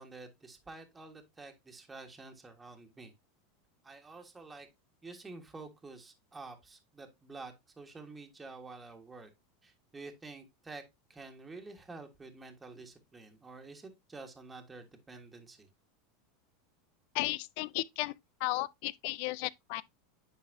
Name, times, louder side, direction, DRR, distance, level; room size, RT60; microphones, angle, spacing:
voice 1, 0.0-3.1 3.8-4.7 5.0-9.3 9.6-10.8 11.1-15.7, right 3 dB, 15° right, 1.5 m, -49 dB
voice 2, 17.1-18.1 18.4-19.8, left 20 dB, 60° left, 0.4 m, -34 dB
9.7 x 4.1 x 2.7 m
supercardioid pair, 115°, 0 cm